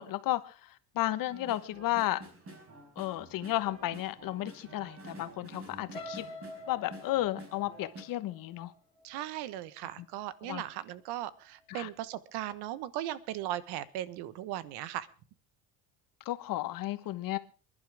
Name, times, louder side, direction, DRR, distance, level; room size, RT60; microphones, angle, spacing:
voice 1, 0.0-2.2 3.0-6.2 6.7-8.7 10.4-10.6 11.7-11.9 16.2-17.4, left 15 dB, 55° left, 1.3 m, -33 dB
sound 1, 1.3-8.0, right 1 dB, 35° right, 5.1 m, -49 dB
sound 2, 5.9-9.9 10.4-10.7 11.0-11.1, left 1 dB, 15° left, 2.8 m, -47 dB
voice 2, 9.0-15.1, right 13 dB, 75° right, 1.3 m, -38 dB
27.0 x 11.5 x 3.5 m
cardioid pair, 140°, 40 cm